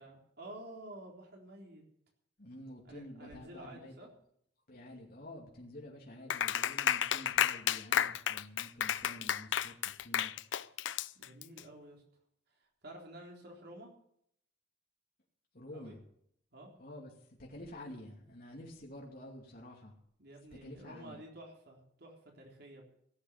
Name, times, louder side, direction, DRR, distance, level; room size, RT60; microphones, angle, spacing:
voice 1, 0.0-1.8 2.8-4.1 11.1-12.0 12.5-13.9 15.7-16.0 16.5-16.7 20.2-22.9, right 1 dB, 60° right, 0 dB, 3.8 m, -51 dB
voice 2, 2.4-3.9 4.7-10.3 15.5-16.0 16.8-17.1 17.4-19.9 20.6-21.2, left 1 dB, 50° left, -2 dB, 2.6 m, -49 dB
Clapping, 6.3-11.6, left 9 dB, 85° left, 0.5 m, -32 dB
17.0 x 8.4 x 7.2 m, 0.69 s
head